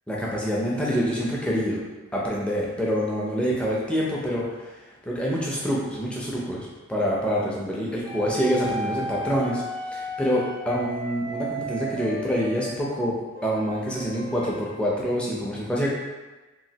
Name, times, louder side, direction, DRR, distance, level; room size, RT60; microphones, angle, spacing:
voice 1, 0.1-1.8 2.1-4.7 5.0-9.6 9.9-13.1 13.4-15.9, equal, 5° left, -5 dB, 0.4 m, -26 dB
sound 1, 8.0-12.7 13.3-14.7, equal, 35° left, 0.7 m, -34 dB
3.0 x 2.5 x 2.8 m, 1.2 s
head